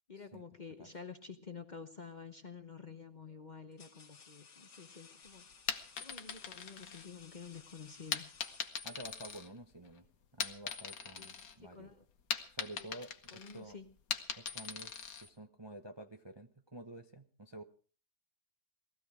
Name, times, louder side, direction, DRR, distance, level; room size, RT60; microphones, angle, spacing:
voice 1, 0.1-5.5 6.0-8.3 11.2-12.1 13.3-13.9, left 5 dB, 35° left, 8 dB, 0.8 m, -50 dB
sound 1, 2.1-2.5 3.3-9.2, left 5 dB, 85° left, 2.3 m, -59 dB
sound 2, 5.5-7.5 8.1-9.9 10.2-11.6 11.9-15.3, left 6 dB, 60° left, 1.5 m, -41 dB
voice 2, 8.8-10.1 10.3-11.9 12.5-13.8 14.4-14.9 15.2-17.6, right 1 dB, 25° right, 5 dB, 0.6 m, -50 dB
19.0 x 14.5 x 4.9 m, 0.40 s
omnidirectional pair, 1.7 m